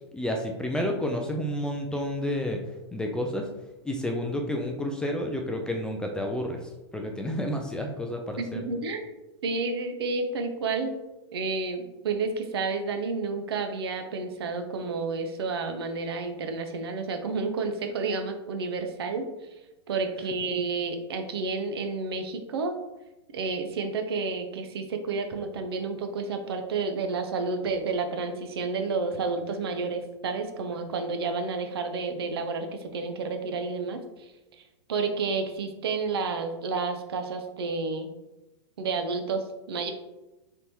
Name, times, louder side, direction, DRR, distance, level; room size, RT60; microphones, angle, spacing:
voice 1, 0.1-2.6 2.9-3.5 3.8-8.6, left 1 dB, 5° left, 2 dB, 0.3 m, -30 dB
voice 2, 8.4-9.0 9.4-11.0 11.3-19.3 19.9-22.8 23.3-34.6 34.9-38.1 38.8-39.9, right 4 dB, 60° right, 6 dB, 0.6 m, -30 dB
4.0 x 3.5 x 2.7 m, 1.0 s
figure-of-eight pair, 100°, 15 cm